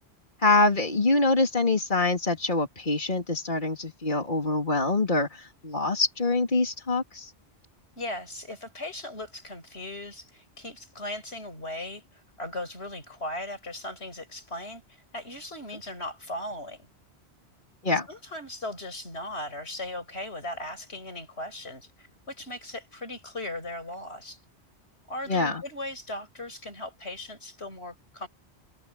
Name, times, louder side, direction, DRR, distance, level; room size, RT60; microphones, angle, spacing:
voice 1, 0.4-7.3 17.8-18.1 25.3-25.6, left 3 dB, 50° left, 3.7 m, -25 dB
voice 2, 8.0-16.9 18.1-24.4 25.1-28.3, left 1 dB, 80° left, 7.1 m, -38 dB
omnidirectional pair, 1.1 m